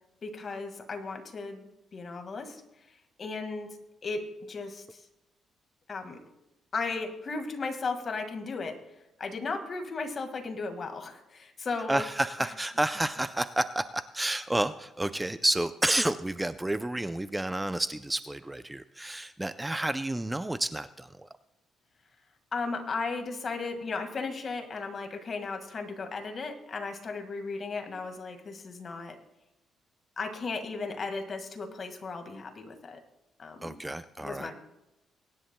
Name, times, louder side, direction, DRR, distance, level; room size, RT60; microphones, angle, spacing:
voice 1, 0.2-1.7 1.9-2.6 3.2-3.8 4.0-5.0 5.9-6.2 6.7-8.8 9.2-12.0 22.5-29.2 30.2-33.0 33.4-33.8 34.2-34.5, left 4 dB, 45° left, 6 dB, 1.8 m, -35 dB
voice 2, 11.9-21.3 33.6-34.5, right 1 dB, 10° right, 12 dB, 0.4 m, -30 dB
23.5 x 10.5 x 2.2 m, 0.95 s
cardioid pair, 90°, 0 cm